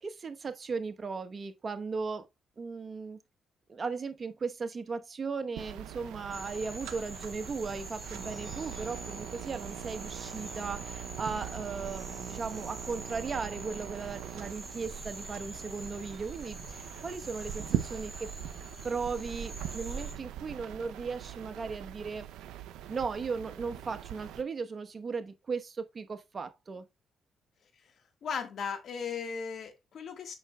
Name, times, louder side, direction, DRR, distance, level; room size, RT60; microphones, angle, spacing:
voice 1, 0.0-2.3 2.6-3.2 3.7-18.3 18.8-22.3 22.9-26.9, right 4 dB, 40° right, 1.0 m, -37 dB
sound 1, 5.6-24.4, right 11 dB, 90° right, 0.5 m, -41 dB
sound 2, 6.3-20.1, right 2 dB, 5° right, 2.3 m, -45 dB
voice 2, 28.2-30.3, left 6 dB, 65° left, 1.5 m, -37 dB
7.5 x 5.9 x 2.3 m
cardioid pair, 75°, 0 cm